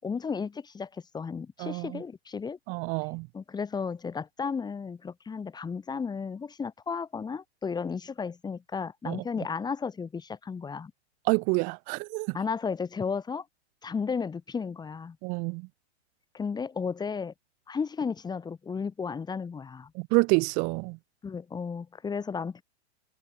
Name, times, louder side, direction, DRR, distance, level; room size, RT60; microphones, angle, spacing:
voice 1, 0.0-2.6 3.3-10.9 12.3-13.4 13.8-15.2 16.3-17.3 17.7-19.9 21.2-22.6, left 5 dB, 10° left, 6.0 m, -34 dB
voice 2, 1.6-2.0 2.7-3.3 9.1-9.2 11.3-12.4 15.2-15.7 19.9-21.0, right 31 dB, 25° right, 0.5 m, -28 dB
hypercardioid pair, 145°, 34 cm